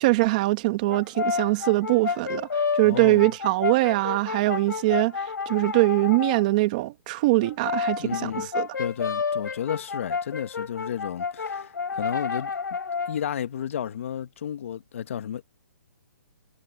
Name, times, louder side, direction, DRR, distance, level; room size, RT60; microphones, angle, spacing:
voice 1, 0.0-8.7, right 20 dB, 25° right, 1.5 m, -23 dB
Brass instrument, 0.9-6.5 7.4-13.2, left 5 dB, 90° left, 4.4 m, -30 dB
voice 2, 2.8-3.3 8.0-8.5 8.8-12.5 13.1-15.4, left 9 dB, 45° left, 1.5 m, -32 dB
hypercardioid pair, 170°, 10 cm